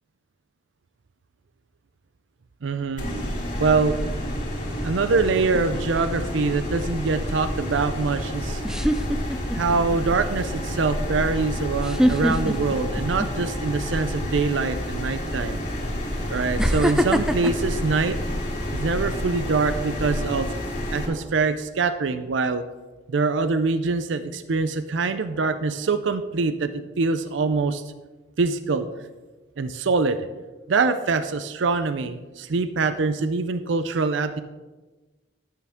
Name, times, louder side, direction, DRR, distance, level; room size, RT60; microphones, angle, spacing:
voice 1, 2.6-3.0 3.6-4.0 4.8-8.6 9.5-15.6 16.3-18.2 18.7-20.5 20.9-22.6 23.1-27.8 28.4-28.9 29.6-30.2 30.7-34.4, right 4 dB, 75° right, 10 dB, 0.5 m, -24 dB
sound 1, 3.0-21.1, equal, 40° left, 3.4 m, -29 dB
sound 2, 5.5-6.0 7.9-8.0 8.6-9.8 10.2-10.5 11.8-13.6 14.0-14.3 15.3-15.4 16.6-18.8 19.3-19.6, equal, 5° right, 0.3 m, -24 dB
13.0 x 8.5 x 3.6 m, 1.2 s
head